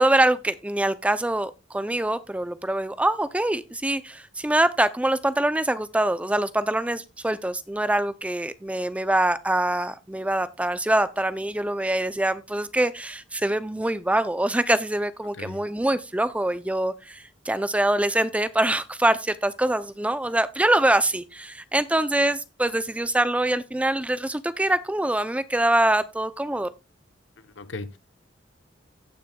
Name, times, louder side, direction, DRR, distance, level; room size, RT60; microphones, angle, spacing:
voice 1, 0.0-26.7, right 1 dB, 5° right, 0.4 m, -24 dB
voice 2, 27.4-28.0, left 3 dB, 75° left, 0.8 m, -37 dB
17.0 x 6.1 x 2.2 m
head